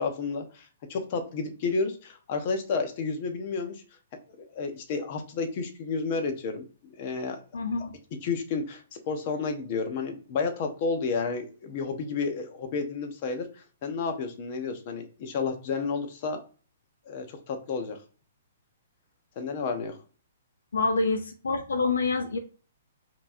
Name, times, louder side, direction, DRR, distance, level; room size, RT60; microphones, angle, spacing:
voice 1, 0.0-3.8 4.4-7.4 8.2-13.5 13.8-16.4 17.1-18.0 19.4-20.0, left 4 dB, 45° left, 5 dB, 0.9 m, -31 dB
voice 2, 7.5-7.9 20.7-22.4, left 3 dB, 85° left, 6 dB, 0.6 m, -27 dB
4.4 x 2.8 x 2.6 m, 0.38 s
hypercardioid pair, 135°, 0 cm